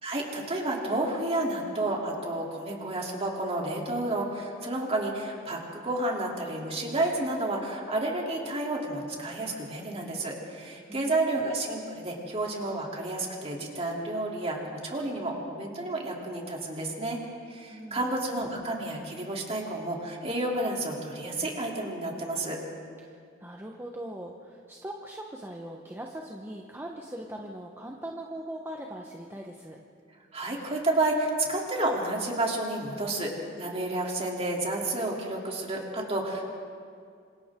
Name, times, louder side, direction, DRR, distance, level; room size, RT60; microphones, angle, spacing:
voice 1, 0.0-17.2 17.5-22.6 30.3-33.3 33.6-36.5, right 2 dB, 30° right, -1 dB, 3.2 m, -30 dB
voice 2, 10.9-11.5 17.7-18.1 23.0-29.8, right 1 dB, 10° right, 0 dB, 1.1 m, -41 dB
27.5 x 26.5 x 3.8 m, 2.2 s
head